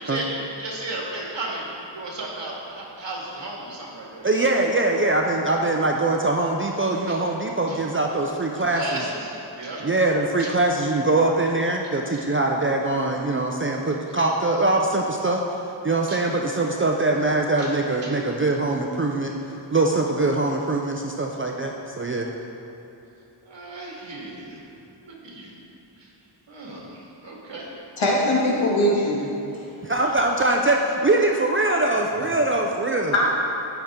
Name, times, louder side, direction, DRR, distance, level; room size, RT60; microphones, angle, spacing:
voice 1, 0.0-4.3 7.1-7.2 7.7-7.8 8.6-9.9 10.4-10.5 12.1-12.2 16.1-16.2 17.6-17.7 18.0-18.2 23.5-24.6 25.0-25.5 26.0-26.1 26.5-27.7, right 2 dB, 65° right, -3 dB, 2.1 m, -35 dB
voice 2, 4.2-9.0 9.8-15.4 15.8-19.3 19.7-22.3 29.8-33.1, right 2 dB, 25° right, 1 dB, 0.5 m, -22 dB
voice 3, 28.0-29.3 33.1-33.3, left 1 dB, 75° left, -4 dB, 2.0 m, -21 dB
14.5 x 5.8 x 3.7 m, 3.0 s
wide cardioid pair, 105°, 47 cm